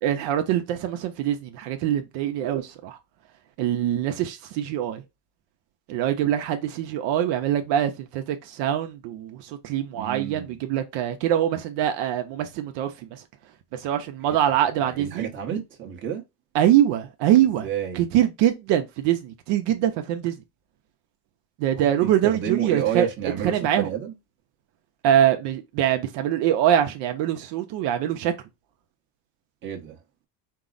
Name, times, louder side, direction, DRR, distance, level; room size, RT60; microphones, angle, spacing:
voice 1, 0.0-3.0 3.6-5.0 5.9-13.2 13.7-15.3 16.5-17.7 17.9-20.3 21.6-23.9 25.0-28.3, right 11 dB, 70° right, 0.7 m, -23 dB
voice 2, 9.9-10.6 14.2-14.4 14.8-16.2 17.6-18.0 21.7-24.1 29.6-30.0, right 9 dB, 25° right, 0.9 m, -30 dB
4.6 x 2.0 x 3.8 m
cardioid pair, 175°, 43 cm